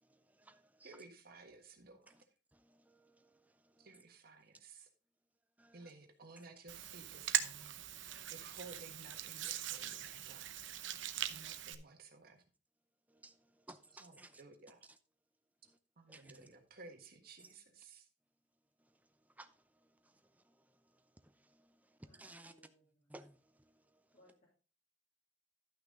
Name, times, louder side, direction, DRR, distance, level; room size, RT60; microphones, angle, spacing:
voice 1, 0.0-1.0 2.1-2.2 2.5-4.0 5.6-5.9 6.4-6.5 7.6-7.7 13.1-14.4 14.8-15.0 15.6-15.8 16.1-16.5 17.4-17.5 18.8-22.5 23.1-24.2, right 2 dB, 10° right, 0.6 m, -60 dB
voice 2, 0.8-2.1 3.8-4.9 5.7-10.6 11.3-12.4 14.0-14.8 16.0-18.0, right 3 dB, 55° right, 1.6 m, -56 dB
Hands, 6.7-11.7, right 11 dB, 80° right, 0.7 m, -41 dB
voice 3, 22.0-23.1 24.1-24.5, left 1 dB, 45° left, 2.9 m, -68 dB
11.5 x 6.0 x 3.8 m
head